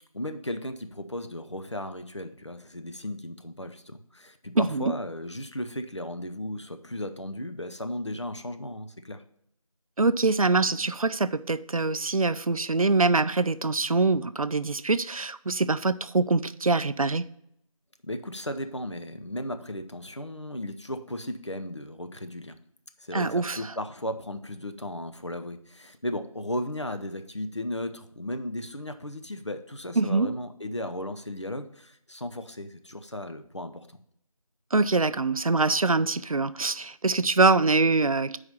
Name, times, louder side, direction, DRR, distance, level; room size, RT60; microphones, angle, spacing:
voice 1, 0.1-9.2 18.0-22.6 23.0-34.0, left 1 dB, 50° left, 0.6 m, -35 dB
voice 2, 10.0-17.3 23.1-23.6 30.0-30.3 34.7-38.4, right 3 dB, 70° right, 0.4 m, -24 dB
5.6 x 4.8 x 6.5 m
figure-of-eight pair, 175°, 19 cm